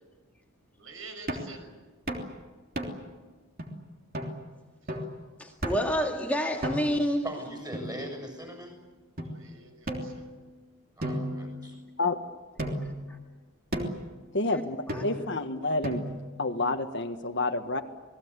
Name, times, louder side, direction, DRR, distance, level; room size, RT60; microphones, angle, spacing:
voice 1, 0.8-1.8 4.8-4.9 9.2-10.3, right 3 dB, 75° right, 6 dB, 6.0 m, -48 dB
sound 1, 1.3-1.6 2.1-2.3 2.8-3.1 3.6-3.7 4.1-4.4 4.9-5.2 5.6-6.0 6.6-7.1 7.7-8.4 9.2-9.3 9.9-10.6 11.0-12.1 12.6-13.0 13.7-14.1 14.9-15.3 15.8-16.3, right 1 dB, 45° right, 3.2 m, -35 dB
voice 2, 5.4-7.3 13.1-13.2 14.5-14.6 14.9-15.0, equal, 5° left, 0 dB, 2.1 m, -28 dB
voice 3, 7.2-8.7 11.0-11.8, equal, 20° right, 4 dB, 7.2 m, -40 dB
voice 4, 14.3-16.0 16.4-17.8, left 2 dB, 55° left, 6 dB, 1.6 m, -29 dB
28.0 x 20.0 x 8.4 m, 1.3 s
head